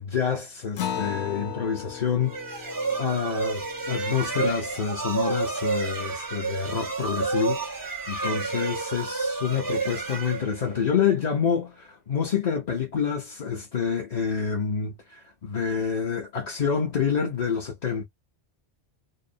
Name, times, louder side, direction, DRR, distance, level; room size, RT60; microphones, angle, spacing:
voice 1, 0.0-2.7 3.0-18.0, left 7 dB, 45° left, 0.6 m, -28 dB
Acoustic guitar, 0.8-5.7, left 8 dB, 75° left, 0.9 m, -37 dB
sound 1, 2.2-11.0, right 4 dB, 25° right, 0.4 m, -30 dB
2.7 x 2.0 x 2.5 m
omnidirectional pair, 1.2 m